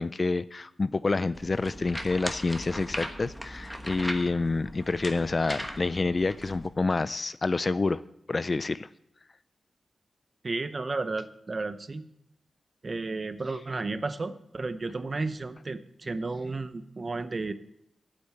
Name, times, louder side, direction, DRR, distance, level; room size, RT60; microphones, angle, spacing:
voice 1, 0.0-8.0 8.3-8.9, left 3 dB, 35° left, 16 dB, 0.4 m, -28 dB
sound 1, 1.3-6.7, equal, ahead, 1.2 m, -38 dB
voice 2, 10.4-12.1 12.8-17.5, right 3 dB, 40° right, 12 dB, 0.7 m, -33 dB
8.7 x 8.3 x 7.8 m, 0.78 s
wide cardioid pair, 110°, 0 cm